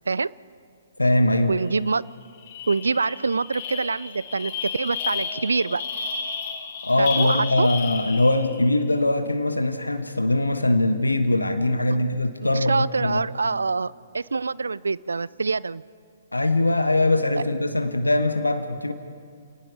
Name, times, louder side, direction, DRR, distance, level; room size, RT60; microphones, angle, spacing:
voice 1, 1.0-1.5 6.8-13.2 16.3-18.9, left 2 dB, 85° left, 8 dB, 1.3 m, -22 dB
voice 2, 1.5-2.1 2.7-5.8 7.0-7.7 12.4-15.8, right 4 dB, 75° right, 21 dB, 0.5 m, -25 dB
sound 1, 1.8-1.9 2.2-8.6, left 6 dB, 45° left, 2.6 m, -32 dB
29.0 x 18.5 x 4.9 m, 2.4 s
figure-of-eight pair, 125°, 0 cm